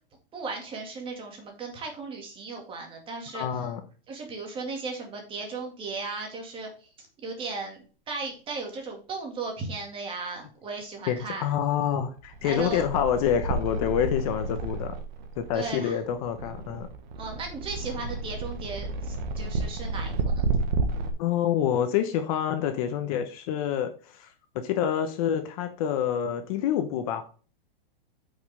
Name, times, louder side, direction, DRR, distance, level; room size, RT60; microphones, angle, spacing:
voice 1, 0.3-3.7 4.1-6.7 7.2-11.5 12.4-12.8 15.5-16.0 17.2-20.5, right 4 dB, 15° right, 2 dB, 2.1 m, -36 dB
voice 2, 3.3-3.8 11.1-14.9 15.4-16.9 21.2-27.2, left 9 dB, 40° left, 7 dB, 0.9 m, -27 dB
sound 1, 12.2-21.1, right 3 dB, 50° right, 1.5 m, -31 dB
9.0 x 5.4 x 3.4 m, 0.38 s
hypercardioid pair, 150°, 29 cm